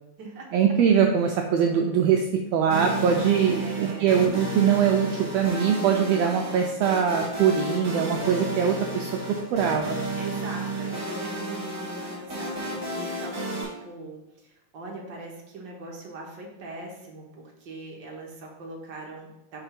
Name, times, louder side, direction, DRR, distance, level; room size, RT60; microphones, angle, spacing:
voice 1, 0.5-2.3 2.5-10.0, right 7 dB, 85° right, 2 dB, 1.4 m, -22 dB
sound 1, 2.7-13.6, right 2 dB, 15° right, 1.1 m, -32 dB
voice 2, 3.4-4.3 10.2-19.6, right 2 dB, 65° right, -1 dB, 1.1 m, -41 dB
5.6 x 3.4 x 5.7 m, 0.92 s
omnidirectional pair, 3.4 m